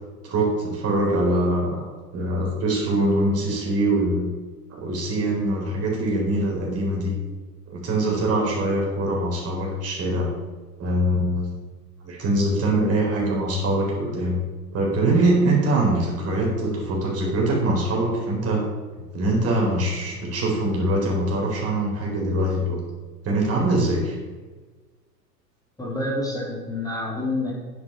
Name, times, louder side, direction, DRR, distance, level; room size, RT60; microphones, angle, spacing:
voice 1, 0.2-1.8 2.1-4.3 4.7-7.1 7.7-10.3 10.8-11.5 12.0-14.4 14.7-18.6 18.9-22.8 23.2-24.2, right 1 dB, 30° right, -2 dB, 4.2 m, -23 dB
voice 2, 25.8-27.5, left 2 dB, 5° left, -5 dB, 3.8 m, -28 dB
10.5 x 9.7 x 5.7 m, 1.3 s
hypercardioid pair, 100°, 49 cm